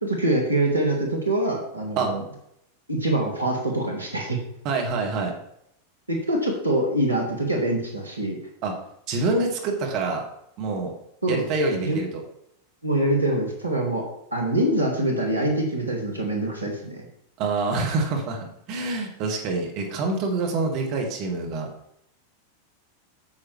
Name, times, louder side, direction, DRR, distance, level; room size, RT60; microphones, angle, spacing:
voice 1, 0.0-2.2 2.9-4.4 6.1-8.4 11.2-11.4 11.8-12.0 12.8-14.0 14.3-17.0, right 1 dB, 85° right, 0 dB, 1.5 m, -24 dB
voice 2, 4.6-5.3 8.6-8.8 9.1-10.2 10.6-10.9 11.3-12.2 17.4-21.7, right 3 dB, 40° right, 2 dB, 1.9 m, -26 dB
9.0 x 7.3 x 3.2 m, 0.74 s
figure-of-eight pair, 90°, 0 cm